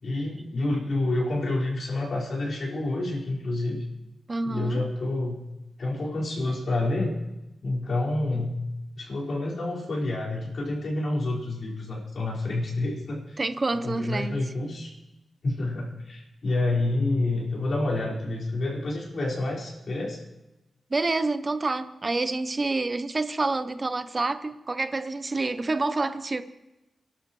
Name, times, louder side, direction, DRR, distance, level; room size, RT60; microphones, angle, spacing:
voice 1, 0.0-3.8 4.4-5.4 5.8-7.2 7.6-8.5 9.0-13.4 13.8-14.9 15.4-20.2, left 2 dB, 60° left, 4.9 m, -28 dB
voice 2, 4.3-4.9 13.4-14.4 20.9-26.4, right 3 dB, 25° right, 0.6 m, -28 dB
29.5 x 12.0 x 3.2 m
wide cardioid pair, 165°, 0 cm